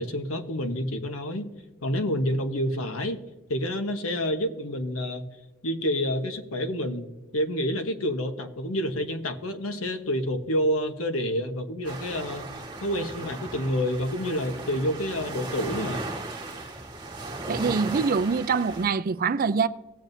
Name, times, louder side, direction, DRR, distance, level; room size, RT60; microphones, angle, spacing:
voice 1, 0.0-1.5 1.8-3.2 3.5-5.2 5.6-7.1 7.3-12.5 12.8-16.0, equal, 80° left, 1.1 m, -28 dB
sound 1, 11.8-18.9, right 2 dB, 20° right, 1.4 m, -36 dB
voice 2, 17.5-19.7, right 5 dB, 45° right, 0.4 m, -24 dB
18.0 x 7.4 x 2.7 m
head